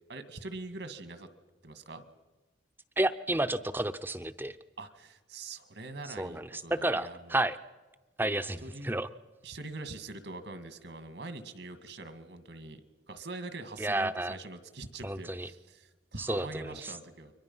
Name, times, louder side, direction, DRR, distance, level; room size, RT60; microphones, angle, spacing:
voice 1, 0.1-1.3 1.6-2.0 4.8-7.4 8.6-8.9 9.4-12.8 13.1-17.3, right 2 dB, 70° right, 10 dB, 2.0 m, -43 dB
voice 2, 3.0-4.6 6.2-6.5 6.8-7.6 8.2-9.1 13.8-14.4 15.0-15.5 16.2-16.9, right 1 dB, 10° right, 12 dB, 0.7 m, -31 dB
30.0 x 23.5 x 5.6 m, 1.2 s
head